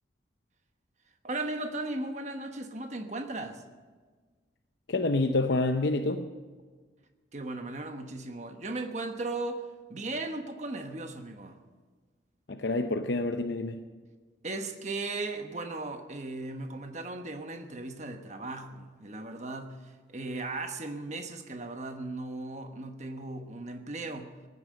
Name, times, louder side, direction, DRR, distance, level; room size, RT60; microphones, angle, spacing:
voice 1, 1.2-3.6 7.3-9.6 9.9-11.6 14.4-24.3, right 2 dB, 40° right, 5 dB, 1.2 m, -37 dB
voice 2, 4.9-6.3 12.5-13.8, left 2 dB, 65° left, 6 dB, 0.7 m, -28 dB
17.5 x 9.7 x 7.6 m, 1.4 s
head